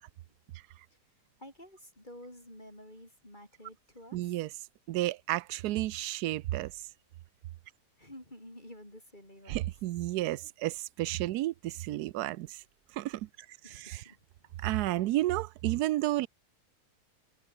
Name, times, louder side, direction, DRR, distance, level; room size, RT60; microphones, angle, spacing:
voice 1, 1.4-4.2 8.0-9.7 13.6-14.2, left 1 dB, 30° left, 8.3 m, -50 dB
voice 2, 4.1-4.5 4.9-6.9 9.5-12.6 12.9-13.3 13.7-14.0 14.6-16.3, right 16 dB, 85° right, 1.1 m, -32 dB
omnidirectional pair, 1.6 m